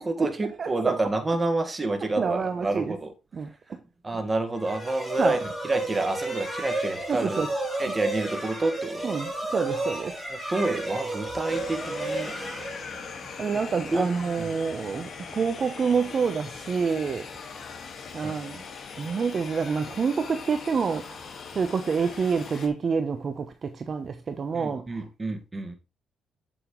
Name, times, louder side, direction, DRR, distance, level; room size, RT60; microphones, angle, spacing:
voice 1, 0.0-3.1 4.0-5.4 5.6-7.4 7.8-9.0 10.3-12.4 13.9-14.1 14.4-14.5 18.2-18.4 24.5-25.8, right 2 dB, 25° right, 1.8 m, -28 dB
voice 2, 0.6-1.0 2.0-2.9 3.3-3.5 5.2-5.4 7.1-7.5 7.9-8.0 9.0-10.1 13.4-17.3 18.1-18.6 19.0-25.0, right 5 dB, 45° right, 0.9 m, -28 dB
sound 1, 4.6-13.3, right 2 dB, ahead, 4.8 m, -32 dB
sound 2, 11.5-22.7, left 5 dB, 55° left, 1.8 m, -41 dB
8.2 x 7.6 x 3.2 m
cardioid pair, 90°, 0 cm